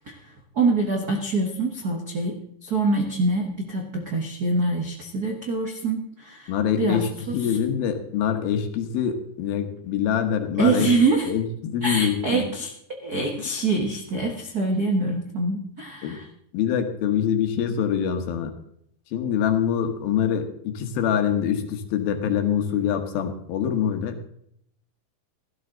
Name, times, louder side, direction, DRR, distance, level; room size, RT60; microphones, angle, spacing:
voice 1, 0.5-6.5 6.8-7.6 10.6-11.3 11.8-12.7 13.0-16.3, right 3 dB, 60° right, 2 dB, 0.9 m, -25 dB
voice 2, 6.5-10.9 11.2-12.4 16.0-16.2 16.5-18.5 19.1-24.2, left 8 dB, 85° left, 6 dB, 3.1 m, -25 dB
16.0 x 13.0 x 3.9 m, 0.71 s
omnidirectional pair, 4.2 m